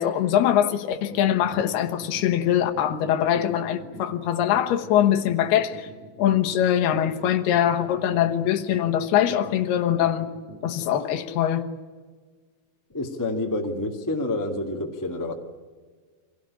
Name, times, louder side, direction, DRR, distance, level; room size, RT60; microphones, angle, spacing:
voice 1, 0.0-5.9 6.2-10.3 10.6-11.7, left 10 dB, 70° left, 3.0 m, -22 dB
sound 1, 1.0-11.0, right 4 dB, 55° right, 6.5 m, -44 dB
voice 2, 12.9-15.3, left 2 dB, 15° left, 0.6 m, -28 dB
26.5 x 17.5 x 9.9 m
omnidirectional pair, 5.1 m